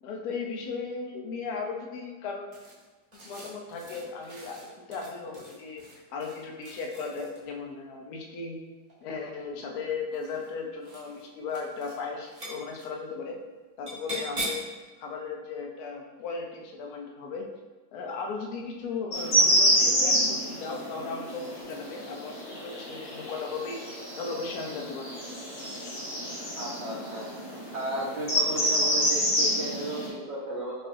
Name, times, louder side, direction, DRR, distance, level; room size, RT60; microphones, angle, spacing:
voice 1, 0.0-2.5 3.2-8.6 9.0-13.4 13.8-14.6 15.0-17.5 17.9-23.8 24.2-25.2, left 4 dB, 70° left, 1 dB, 1.1 m, -36 dB
sound 1, 2.5-7.5 8.7-9.4 10.1-10.5 10.8-11.2 11.5-12.0 12.2-12.9 13.9-14.7, right 1 dB, 30° right, 0.8 m, -41 dB
sound 2, 19.1-30.1, equal, 50° left, 1.4 m, -28 dB
voice 2, 26.5-27.3 27.7-30.8, right 1 dB, 65° right, -6 dB, 0.7 m, -34 dB
5.4 x 2.6 x 2.6 m, 1.3 s
omnidirectional pair, 1.8 m